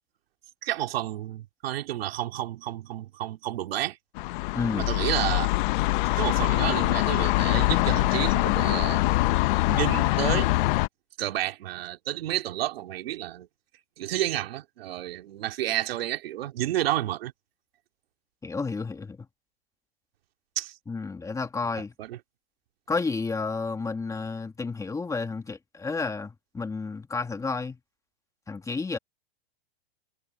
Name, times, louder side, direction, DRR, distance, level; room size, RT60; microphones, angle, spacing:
voice 1, 0.6-4.0 4.7-5.5 6.2-9.0 9.6-10.5 11.2-13.5 14.0-17.3 20.6-20.8 22.0-22.2, right 14 dB, 70° right, 3.0 m, -30 dB
sound 1, 4.2-10.9, left 20 dB, 55° left, 1.1 m, -24 dB
voice 2, 4.5-4.9 18.4-19.2 20.9-21.9 22.9-27.8 28.5-29.0, left 4 dB, 10° left, 2.0 m, -31 dB
hypercardioid pair, 125°, 31 cm